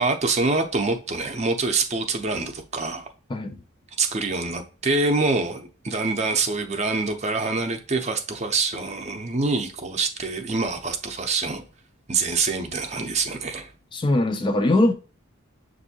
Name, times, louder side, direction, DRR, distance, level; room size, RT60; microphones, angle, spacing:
voice 1, 0.0-3.1 4.0-11.6 12.1-13.7, right 3 dB, 35° right, 0.6 m, -25 dB
voice 2, 13.9-14.9, left 1 dB, 25° left, 0.4 m, -21 dB
7.0 x 2.6 x 2.7 m
head